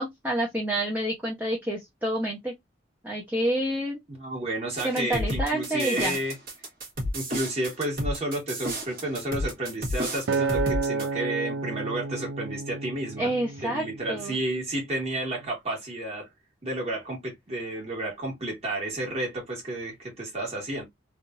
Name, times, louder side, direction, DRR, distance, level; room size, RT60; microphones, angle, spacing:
voice 1, 0.0-2.5 3.0-4.0 4.8-6.2 13.2-14.4, right 1 dB, 10° right, 0.9 m, -28 dB
voice 2, 4.2-6.4 7.1-13.3 13.6-16.3 16.6-20.8, right 1 dB, 30° right, 1.8 m, -31 dB
sound 1, 4.8-11.1, equal, 45° right, 1.4 m, -31 dB
Acoustic guitar, 10.3-14.6 15.2-15.5, right 4 dB, 70° right, 0.4 m, -31 dB
3.6 x 2.6 x 2.5 m
head